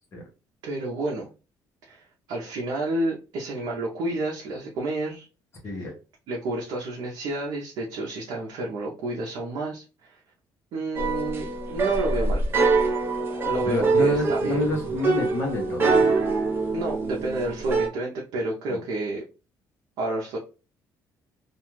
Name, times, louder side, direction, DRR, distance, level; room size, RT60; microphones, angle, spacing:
voice 1, 0.6-1.3 1.8-5.3 6.3-10.2 10.7-12.4 13.5-14.6 16.7-19.2 20.0-20.4, right 2 dB, 70° right, -2 dB, 0.6 m, -30 dB
sound 1, 10.9-17.9, right 3 dB, 30° right, 0.6 m, -24 dB
voice 2, 13.7-16.1 18.7-18.8, left 2 dB, 35° left, 0 dB, 0.8 m, -28 dB
2.4 x 2.3 x 3.0 m, 0.32 s
cardioid pair, 165°, 7 cm